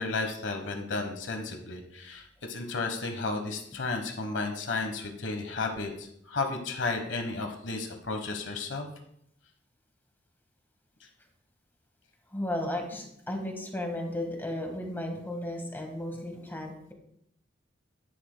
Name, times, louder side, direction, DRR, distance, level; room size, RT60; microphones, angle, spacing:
voice 1, 0.0-8.9, left 3 dB, 70° left, 4 dB, 1.2 m, -33 dB
voice 2, 12.3-16.9, left 1 dB, 10° left, 2 dB, 1.5 m, -34 dB
11.0 x 10.0 x 2.2 m, 0.74 s
head